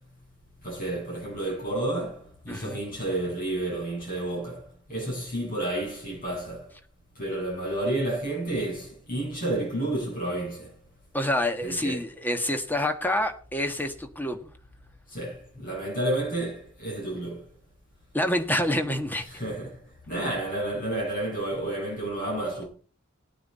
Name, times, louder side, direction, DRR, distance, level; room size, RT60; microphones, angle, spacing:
voice 1, 0.6-6.7 7.1-10.7 11.6-12.0 15.1-17.5 19.3-22.7, right 1 dB, 40° left, 7.5 m, -31 dB
voice 2, 2.5-2.8 11.1-14.5 18.1-19.3, left 1 dB, 10° left, 1.4 m, -27 dB
19.0 x 9.3 x 4.2 m
head